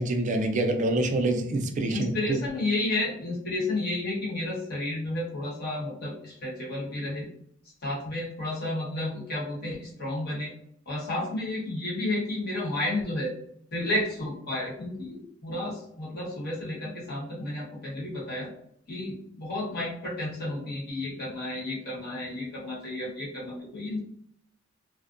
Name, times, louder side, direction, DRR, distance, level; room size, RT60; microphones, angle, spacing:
voice 1, 0.0-2.4, right 2 dB, 35° right, 4 dB, 0.4 m, -26 dB
voice 2, 1.9-7.3 7.8-10.5 10.9-13.3 13.7-18.5 18.9-24.0, left 1 dB, 50° left, -6 dB, 1.2 m, -32 dB
2.4 x 2.1 x 2.5 m, 0.68 s
head